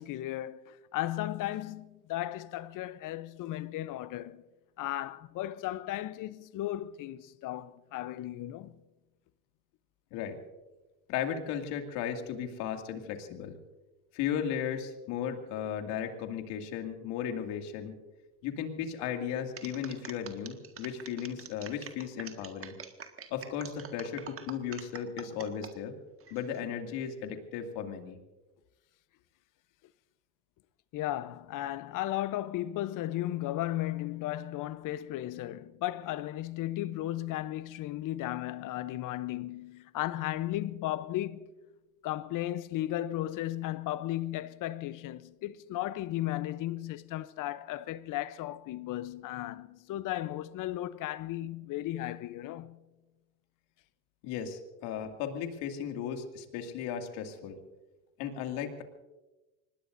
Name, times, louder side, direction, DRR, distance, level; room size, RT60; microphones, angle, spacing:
voice 1, 0.0-4.4 4.8-8.8 30.9-41.5 42.0-52.8, left 14 dB, 50° left, 0.8 m, -35 dB
voice 2, 11.1-13.6 14.1-17.9 18.4-22.7 23.3-25.9 26.3-28.2 54.2-57.6 58.2-58.8, left 8 dB, 65° left, 2.5 m, -36 dB
sound 1, 19.6-25.7 26.2-26.6, right 7 dB, 30° right, 1.8 m, -45 dB
24.5 x 20.0 x 2.7 m
supercardioid pair, 95°, 42 cm